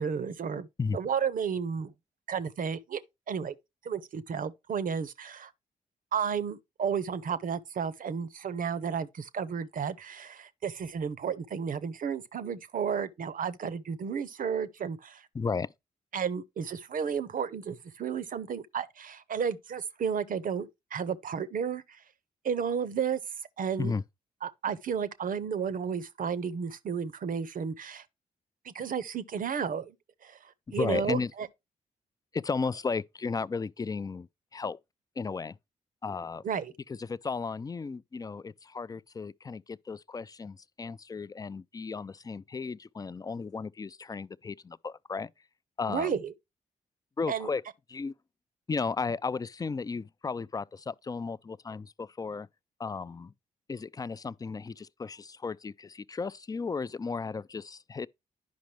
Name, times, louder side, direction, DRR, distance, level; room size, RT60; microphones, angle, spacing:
voice 1, 0.0-0.7 0.9-1.9 2.3-3.0 3.3-3.5 3.8-5.5 6.1-15.2 16.1-21.8 22.4-23.2 23.6-23.9 24.4-28.0 28.6-29.9 30.2-30.4 30.7-31.5 36.4-36.7 45.9-46.3 47.3-47.5, right 7 dB, 55° right, 0.7 m, -32 dB
voice 2, 15.3-15.7 23.8-24.0 30.7-31.3 32.3-34.3 34.5-34.8 35.2-35.6 36.0-36.4 36.9-45.3 45.8-46.1 47.2-47.6 47.9-48.1 48.7-52.5 52.8-53.3 53.7-58.1, left 4 dB, 20° left, 0.3 m, -34 dB
10.5 x 5.2 x 3.2 m
supercardioid pair, 45°, 16 cm